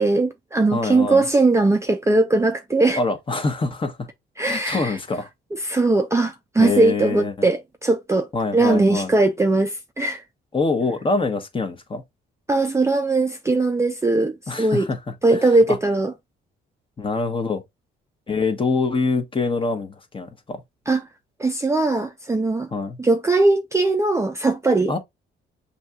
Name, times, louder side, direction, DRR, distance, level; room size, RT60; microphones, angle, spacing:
voice 1, 0.0-3.0 4.4-5.0 5.6-8.3 8.5-10.2 12.5-14.9 15.2-16.1 20.9-21.0 21.4-22.7 23.0-25.0, right 2 dB, 15° right, 0.4 m, -20 dB
voice 2, 0.7-1.2 3.0-4.1 4.4-5.3 6.6-7.5 8.3-9.1 10.5-12.0 14.5-15.0 15.3-15.8 17.0-17.6 18.3-20.6 22.7-23.0 24.9-25.0, left 3 dB, 25° left, 0.9 m, -25 dB
6.2 x 2.7 x 2.2 m
cardioid pair, 90°, 20 cm